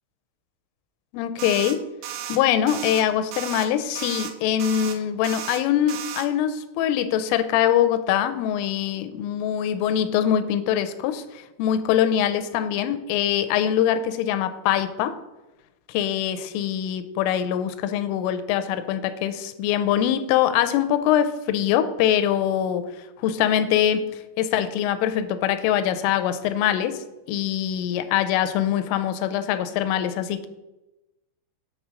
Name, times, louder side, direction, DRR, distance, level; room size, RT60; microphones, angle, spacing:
voice 1, 1.1-1.9 2.3-15.2 15.9-22.8 23.2-24.0 24.4-30.5, left 10 dB, 85° left, 10 dB, 3.1 m, -23 dB
sound 1, 1.4-1.8 2.0-2.4 2.7-3.0 3.3-3.7 4.0-4.3 4.6-5.0 5.2-5.6 5.9-6.3, right 10 dB, 85° right, 2.7 m, -34 dB
8.7 x 3.4 x 6.1 m, 1.0 s
omnidirectional pair, 5.6 m